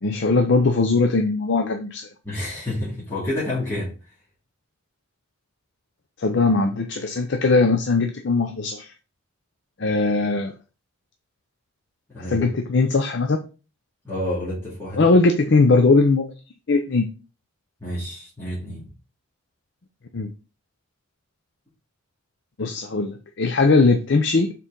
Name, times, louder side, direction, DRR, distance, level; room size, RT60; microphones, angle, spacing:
voice 1, 0.0-2.1 6.2-8.9 9.8-10.5 12.3-13.4 15.0-16.3 16.7-17.1 20.1-20.3 22.6-24.5, left 3 dB, 55° left, 6 dB, 0.5 m, -20 dB
voice 2, 2.2-3.9 12.1-12.5 14.0-15.1 17.8-18.9, left 1 dB, 10° left, -10 dB, 2.3 m, -29 dB
6.3 x 4.1 x 3.8 m, 0.33 s
head